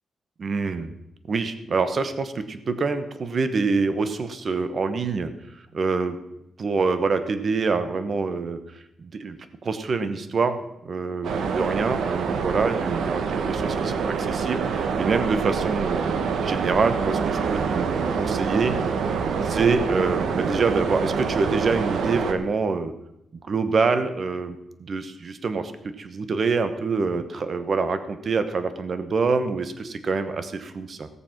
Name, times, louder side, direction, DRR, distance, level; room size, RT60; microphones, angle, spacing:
voice 1, 0.4-0.9 1.3-6.2 6.6-8.6 9.0-9.4 9.6-18.7 19.4-22.9 23.5-31.1, right 4 dB, 45° right, 10 dB, 1.0 m, -26 dB
sound 1, 11.2-22.3, right 5 dB, 80° right, 1.1 m, -26 dB
17.0 x 6.9 x 5.9 m, 0.85 s
cardioid pair, 120°, 0 cm